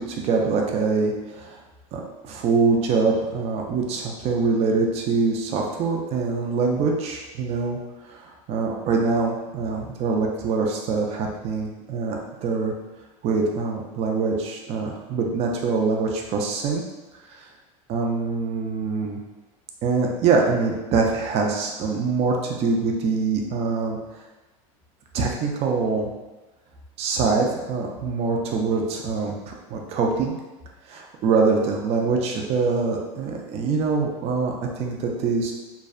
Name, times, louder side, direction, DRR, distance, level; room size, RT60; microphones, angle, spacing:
voice 1, 0.0-1.6 1.9-7.8 8.1-12.7 13.2-16.8 17.3-17.5 17.9-19.2 19.8-24.0 25.1-26.1 27.0-30.4 30.9-35.5, right 4 dB, 40° right, 0 dB, 0.4 m, -24 dB
2.5 x 2.1 x 2.4 m, 1.1 s
supercardioid pair, 125°, 17 cm